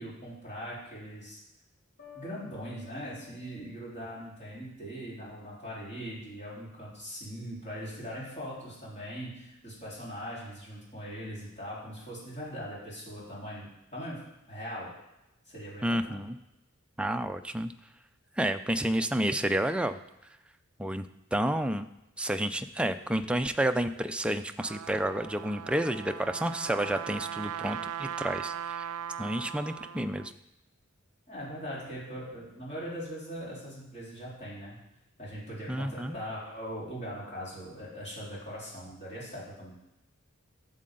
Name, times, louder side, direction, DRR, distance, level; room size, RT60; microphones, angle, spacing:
voice 1, 0.0-1.4 2.1-14.9 15.5-16.0 31.3-34.8 35.2-39.7, equal, 35° left, -7 dB, 3.9 m, -40 dB
sound 1, 2.0-4.8, left 10 dB, 50° left, 4.2 m, -53 dB
voice 2, 15.8-16.4 17.0-17.7 18.4-20.0 20.8-21.1 21.3-21.9 22.2-28.9 29.2-30.3 35.7-36.2, right 1 dB, 5° right, 8 dB, 0.4 m, -30 dB
Trumpet, 24.3-30.3, right 9 dB, 80° right, 0.3 m, -39 dB
12.5 x 7.5 x 3.8 m, 0.90 s
head